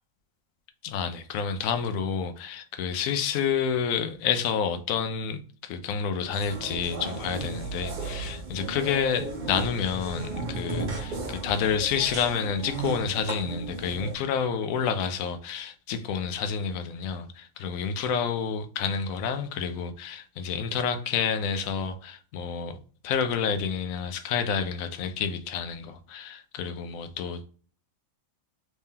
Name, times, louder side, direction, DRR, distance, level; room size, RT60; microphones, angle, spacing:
voice 1, 0.8-22.8 23.0-27.4, left 6 dB, 80° left, 1.0 m, -29 dB
sound 1, 6.2-14.2, right 3 dB, 45° right, 0.7 m, -35 dB
3.6 x 3.1 x 2.7 m
omnidirectional pair, 1.4 m